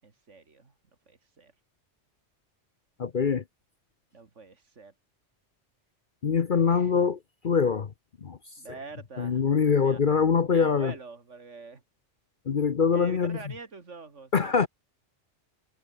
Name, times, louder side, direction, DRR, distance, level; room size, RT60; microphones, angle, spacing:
voice 1, 0.0-0.7 1.1-1.5 4.1-4.9 6.5-6.9 8.6-9.4 9.8-10.0 10.5-11.8 12.9-14.7, right 4 dB, 90° right, 2.7 m, -45 dB
voice 2, 3.0-3.4 6.2-7.2 7.4-7.9 8.2-8.4 9.2-10.9 12.5-13.4 14.3-14.7, left 6 dB, 45° left, 1.0 m, -23 dB
omnidirectional pair, 1.2 m